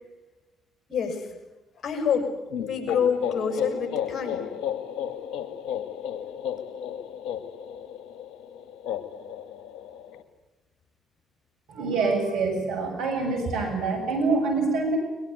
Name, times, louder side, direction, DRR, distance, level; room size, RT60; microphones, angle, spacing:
voice 1, 0.9-1.3 1.8-2.3 2.6-4.5, left 6 dB, 50° left, 5 dB, 7.1 m, -27 dB
sound 1, 2.5-10.2, left 9 dB, 70° left, 1.9 m, -33 dB
voice 2, 11.7-15.0, right 3 dB, 75° right, 4 dB, 7.4 m, -25 dB
22.0 x 22.0 x 9.3 m, 1.1 s
hypercardioid pair, 55°, 0 cm